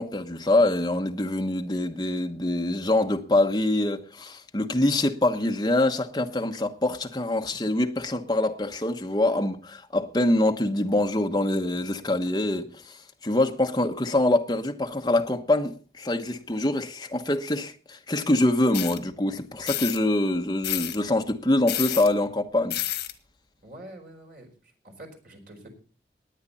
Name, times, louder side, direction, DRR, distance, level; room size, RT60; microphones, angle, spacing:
voice 1, 0.0-22.8, left 1 dB, 25° left, 1.1 m, -25 dB
sound 1, 18.7-19.0 19.7-20.0 20.6-21.0 21.7-22.1 22.7-23.1, left 13 dB, 80° left, 1.6 m, -29 dB
voice 2, 23.6-25.7, right 1 dB, 50° right, 4.4 m, -46 dB
18.5 x 9.6 x 4.1 m
head